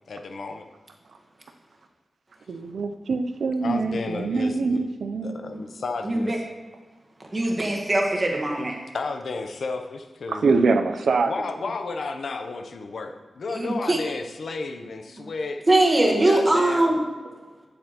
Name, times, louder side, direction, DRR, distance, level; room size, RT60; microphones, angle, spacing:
voice 1, 0.1-0.7 3.6-4.8 5.2-6.4 8.9-10.5 11.2-15.7 16.1-17.0, left 3 dB, 65° left, 6 dB, 0.6 m, -33 dB
voice 2, 2.5-5.4 10.3-11.5, right 4 dB, 75° right, 8 dB, 0.5 m, -24 dB
voice 3, 6.0-6.4 7.3-8.8 13.5-14.0 15.2-15.3 15.7-17.0, right 2 dB, 25° right, 0 dB, 1.2 m, -21 dB
9.1 x 7.7 x 3.0 m, 1.4 s
wide cardioid pair, 165°, 0 cm